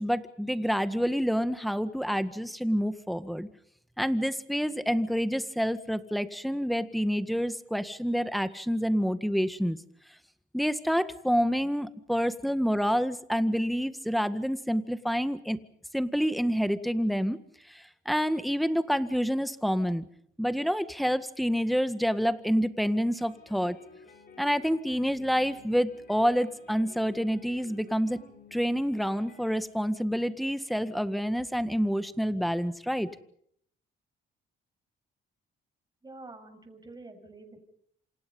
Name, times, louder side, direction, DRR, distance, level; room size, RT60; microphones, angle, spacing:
voice 1, 0.0-3.5 4.0-9.8 10.5-15.6 15.9-17.4 17.7-20.1 20.4-23.8 24.4-28.2 28.5-33.1, equal, ahead, 11 dB, 1.8 m, -28 dB
sound 1, 23.2-29.5, left 4 dB, 50° left, 7.1 m, -54 dB
voice 2, 36.0-37.6, right 2 dB, 20° right, 5 dB, 7.0 m, -47 dB
28.0 x 27.5 x 5.6 m, 0.68 s
cardioid pair, 90°, 20 cm